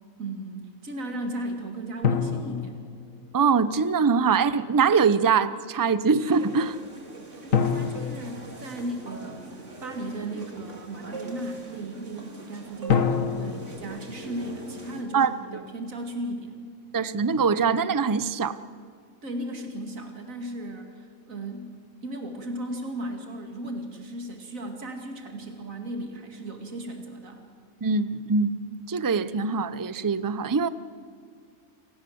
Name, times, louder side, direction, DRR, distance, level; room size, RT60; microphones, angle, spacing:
voice 1, 0.2-2.8 7.3-16.6 19.2-21.7 22.0-27.5, right 1 dB, 80° right, 5 dB, 2.8 m, -36 dB
sound 1, 2.0-3.7 7.5-9.4 12.9-15.2, left 6 dB, 80° left, 1.9 m, -28 dB
voice 2, 3.3-6.8 15.1-15.4 16.9-18.6 27.8-30.7, right 5 dB, 25° right, 15 dB, 0.5 m, -23 dB
sound 2, 6.2-15.0, right 2 dB, 60° right, 3.1 m, -42 dB
29.0 x 17.5 x 7.9 m, 2.1 s
omnidirectional pair, 1.4 m